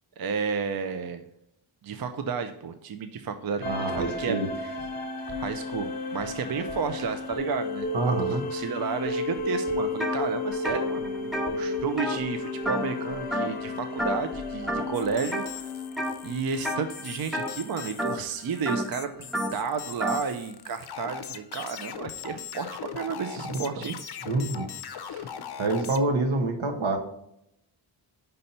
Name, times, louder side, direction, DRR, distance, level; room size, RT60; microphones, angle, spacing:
voice 1, 0.2-1.2 1.8-4.4 4.6-4.7 5.4-7.9 8.2-15.7 16.2-23.9 25.1-25.3, right 5 dB, 50° right, 9 dB, 0.5 m, -32 dB
sound 1, 3.6-17.7, left 3 dB, 20° left, 1.0 m, -33 dB
voice 2, 3.6-4.5 7.9-8.5 24.3-24.6 25.6-27.0, right 3 dB, 75° right, 4 dB, 1.1 m, -26 dB
sound 2, 10.0-10.2 10.5-13.0 13.3-13.7 14.0-14.4 14.7-15.5 16.0-16.3 16.6-20.2, equal, ahead, 0.6 m, -31 dB
sound 3, 14.9-26.0, left 8 dB, 55° left, 0.5 m, -40 dB
5.4 x 4.2 x 5.3 m, 0.79 s
wide cardioid pair, 180°, 47 cm